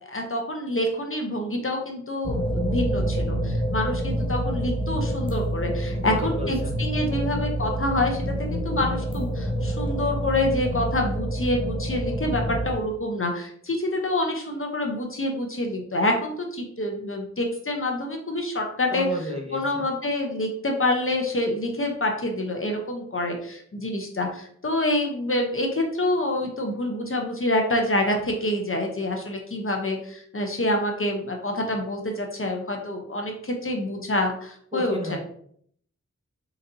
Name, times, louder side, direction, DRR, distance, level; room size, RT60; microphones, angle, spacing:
voice 1, 0.1-19.1 19.5-35.2, left 1 dB, 45° left, 2 dB, 0.8 m, -27 dB
sound 1, 2.2-12.7, right 1 dB, 20° left, 0.6 m, -27 dB
voice 2, 6.0-6.7 18.9-19.8 34.7-35.2, right 1 dB, 20° right, -1 dB, 1.1 m, -32 dB
4.1 x 4.0 x 2.7 m, 0.63 s
wide cardioid pair, 65°, 29 cm